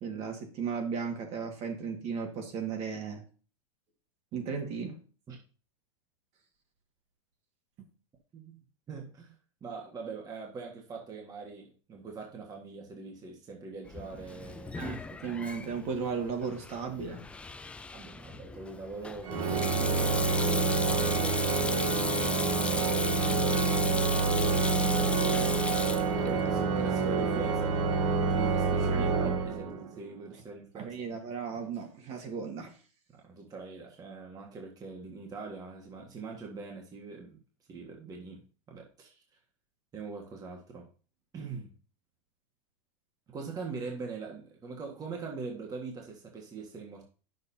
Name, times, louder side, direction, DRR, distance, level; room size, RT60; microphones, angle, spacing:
voice 1, 0.0-3.2 4.3-5.0 14.8-17.2 28.9-29.3 30.7-32.8, right 5 dB, 40° right, 1.7 m, -35 dB
voice 2, 8.3-9.3 9.6-15.4 17.9-24.0 26.2-27.8 28.3-30.9 33.2-37.4 37.7-39.2 39.9-40.9 41.3-41.7 43.3-47.1, right 4 dB, 20° right, 1.5 m, -43 dB
Sink (filling or washing), 13.9-27.6, left 3 dB, 5° left, 0.3 m, -36 dB
Organ, 19.2-30.0, right 4 dB, 75° right, 1.5 m, -28 dB
9.5 x 6.6 x 2.7 m
supercardioid pair, 130°, 16 cm